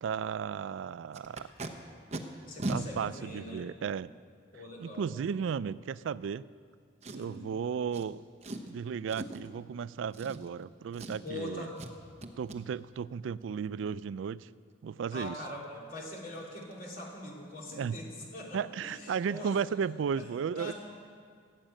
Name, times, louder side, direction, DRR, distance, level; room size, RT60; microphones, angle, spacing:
voice 1, 0.0-1.5 2.7-4.1 4.8-6.5 7.1-8.2 8.7-11.7 12.4-14.5 14.8-15.4 17.8-18.0 18.5-20.7, right 7 dB, 90° right, 18 dB, 0.3 m, -34 dB
Packing tape duct tape, 1.1-1.7 2.1-2.2 2.6-2.8 3.6-3.7 7.0-7.4 7.9-8.1 8.4-8.7 9.1-9.5 10.1-10.7 10.9-11.4 11.8-11.9 12.2-12.6 15.6-15.7 16.0-16.2 16.6-16.7 17.0-17.3 17.5-17.6, right 1 dB, 35° right, 0.9 m, -39 dB
voice 2, 2.5-3.7 4.5-5.1 7.1-7.5 11.2-11.7 15.1-19.6 20.2-20.3 20.6-20.7, left 1 dB, 50° left, -2 dB, 3.0 m, -42 dB
16.5 x 7.4 x 9.0 m, 2.2 s
head